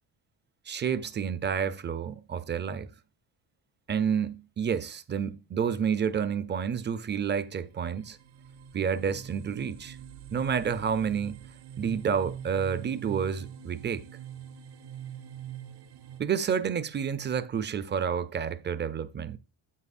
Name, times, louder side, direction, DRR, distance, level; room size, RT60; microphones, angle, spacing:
voice 1, 0.7-2.9 3.9-8.2 8.7-10.0 10.3-11.4 11.8-14.0 16.2-19.4, right 7 dB, 25° right, 0.5 m, -29 dB
sound 1, 7.2-7.3 7.7-16.2, right 9 dB, 60° right, 0.8 m, -44 dB
9.8 x 7.9 x 2.5 m
cardioid pair, 135°, 45 cm